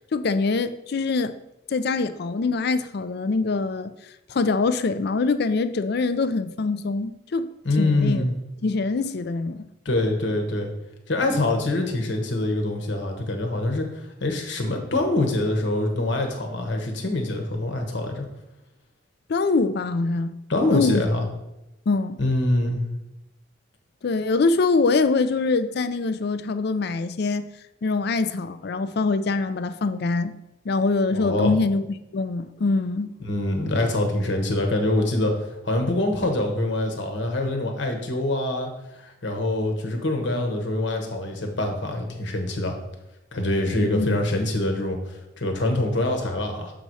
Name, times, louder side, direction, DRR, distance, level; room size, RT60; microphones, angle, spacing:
voice 1, 0.1-1.4 1.7-3.9 4.3-7.5 7.8-8.2 8.6-9.6 19.3-20.4 20.7-21.0 21.9-22.2 24.0-27.5 27.8-30.3 30.7-31.8 32.1-33.1 43.8-44.2, left 3 dB, 60° left, 0.4 m, -24 dB
voice 2, 7.6-8.3 9.8-10.7 11.1-18.3 20.5-21.2 22.2-22.8 31.1-31.6 33.2-42.8 43.3-46.7, left 1 dB, 75° left, 1.3 m, -25 dB
7.0 x 4.1 x 4.8 m
head